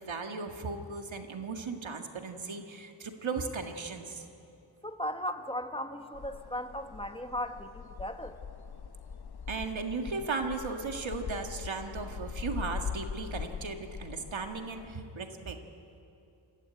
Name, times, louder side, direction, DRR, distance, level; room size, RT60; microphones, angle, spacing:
voice 1, 0.0-4.3 9.5-15.6, right 4 dB, 85° right, 4 dB, 1.8 m, -36 dB
voice 2, 4.8-8.3, left 1 dB, 10° left, 7 dB, 1.2 m, -37 dB
sound 1, 6.1-15.0, left 6 dB, 55° left, 0.8 m, -42 dB
25.0 x 15.5 x 9.3 m, 2.7 s
wide cardioid pair, 75°, 45 cm